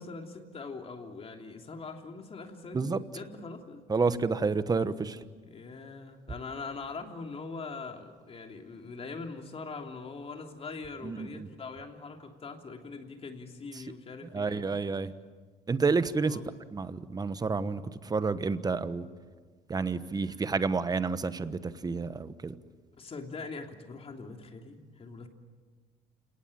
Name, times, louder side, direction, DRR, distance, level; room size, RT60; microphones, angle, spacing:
voice 1, 0.0-3.8 5.4-14.8 16.2-16.5 19.9-20.0 20.2-20.4 23.0-25.3, left 4 dB, 35° left, 4 dB, 3.1 m, -42 dB
voice 2, 3.9-5.2 11.0-11.5 14.3-15.1 15.7-16.4 16.7-19.1 19.7-22.5, right 4 dB, 25° right, 13 dB, 1.2 m, -29 dB
29.0 x 18.5 x 8.9 m, 1.5 s
cardioid pair, 110°, 17 cm